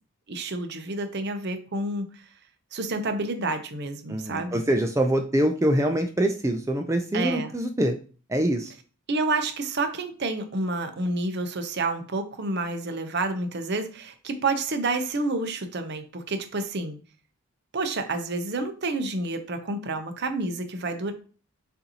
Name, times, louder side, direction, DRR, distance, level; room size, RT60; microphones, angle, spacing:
voice 1, 0.3-2.2 2.7-4.6 7.1-7.5 9.1-17.0 17.7-21.1, right 2 dB, 50° right, 7 dB, 0.6 m, -29 dB
voice 2, 4.1-8.0 8.3-8.7, right 1 dB, 15° right, 5 dB, 0.3 m, -24 dB
6.6 x 2.6 x 2.8 m, 0.38 s
head